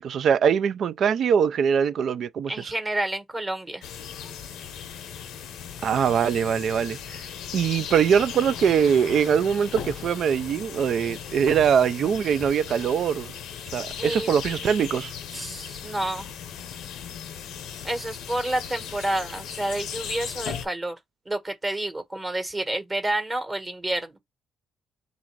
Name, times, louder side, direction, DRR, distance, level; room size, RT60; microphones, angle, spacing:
voice 1, 0.0-2.5 5.8-7.2 7.5-13.3 13.7-15.1, right 7 dB, 65° right, 0.3 m, -22 dB
voice 2, 2.5-3.8 14.0-14.4 15.3-16.3 17.8-21.0 21.2-24.2, right 1 dB, 25° right, 1.2 m, -29 dB
sound 1, 3.8-20.6, left 8 dB, 85° left, 0.7 m, -37 dB
3.9 x 2.5 x 4.5 m
cardioid pair, 90°, 0 cm